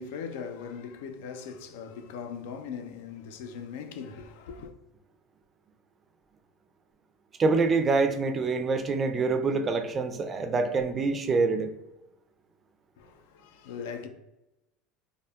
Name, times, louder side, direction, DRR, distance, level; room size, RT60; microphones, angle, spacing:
voice 1, 0.0-4.7 13.0-14.1, left 6 dB, 85° left, 0.3 m, -40 dB
voice 2, 7.4-11.7, right 4 dB, 30° right, 0.3 m, -25 dB
3.4 x 2.0 x 2.2 m
supercardioid pair, 120°, 0 cm